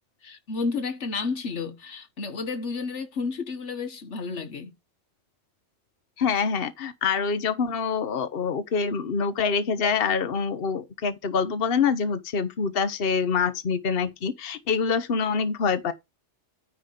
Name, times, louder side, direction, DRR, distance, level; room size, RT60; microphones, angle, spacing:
voice 1, 0.2-4.7, left 4 dB, 85° left, 1.6 m, -31 dB
voice 2, 6.2-15.9, left 5 dB, 55° left, 1.2 m, -25 dB
9.5 x 3.7 x 6.7 m
omnidirectional pair, 1.2 m